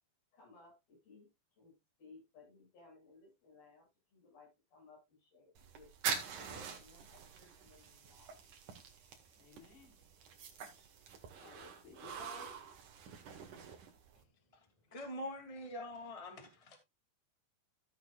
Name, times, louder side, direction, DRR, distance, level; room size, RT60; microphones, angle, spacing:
voice 1, 0.3-1.3 1.6-1.7 2.0-5.5 5.7-5.9 6.3-8.3, left 3 dB, 80° left, 9.7 m, -60 dB
sound 1, 5.6-14.2, right 6 dB, 60° right, 3.2 m, -45 dB
voice 2, 9.4-9.9 11.3-12.6, left 3 dB, 50° left, 4.5 m, -55 dB
voice 3, 14.5-16.8, left 1 dB, 10° left, 1.8 m, -45 dB
15.5 x 7.6 x 2.4 m
omnidirectional pair, 4.2 m